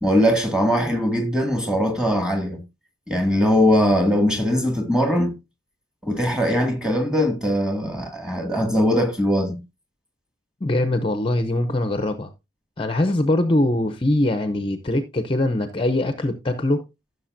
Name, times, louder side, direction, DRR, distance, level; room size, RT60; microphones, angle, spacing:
voice 1, 0.0-2.6 3.1-5.4 6.0-9.6, equal, 5° right, 1.9 m, -21 dB
voice 2, 10.6-12.3 12.8-16.8, left 1 dB, 25° left, 0.6 m, -22 dB
14.5 x 6.6 x 2.6 m
head